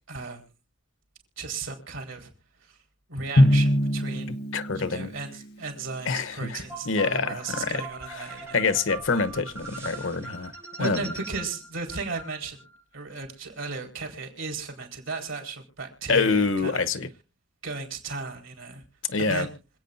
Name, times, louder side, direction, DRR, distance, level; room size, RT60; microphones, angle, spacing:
voice 1, 0.1-0.4 1.4-2.3 2.6-2.8 3.1-4.4 4.7-8.6 10.8-12.7 12.9-16.9 17.6-18.8 19.2-19.5, right 4 dB, 90° right, 2 dB, 4.4 m, -35 dB
Drum, 3.4-5.5, left 1 dB, 55° left, 0.9 m, -22 dB
voice 2, 4.5-5.1 6.1-7.8 8.3-10.5 10.8-11.0 16.1-17.1 19.1-19.5, left 4 dB, 90° left, 13 dB, 1.0 m, -26 dB
sound 1, 6.7-12.8, right 3 dB, 15° right, 6.5 m, -41 dB
26.0 x 8.7 x 2.7 m, 0.33 s
head